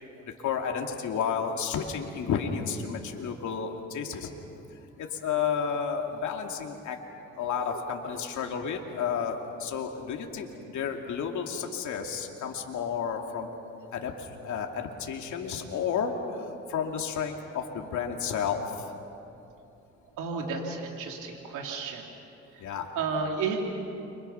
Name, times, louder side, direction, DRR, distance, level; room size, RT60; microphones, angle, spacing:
voice 1, 0.2-4.3 5.0-7.0 7.4-13.5 13.9-18.6 22.6-22.9, left 7 dB, 75° left, 2 dB, 2.7 m, -31 dB
voice 2, 20.2-22.0 22.9-23.6, right 5 dB, 90° right, 1 dB, 3.0 m, -32 dB
30.0 x 25.5 x 5.8 m, 2.8 s
cardioid pair, 90°, 30 cm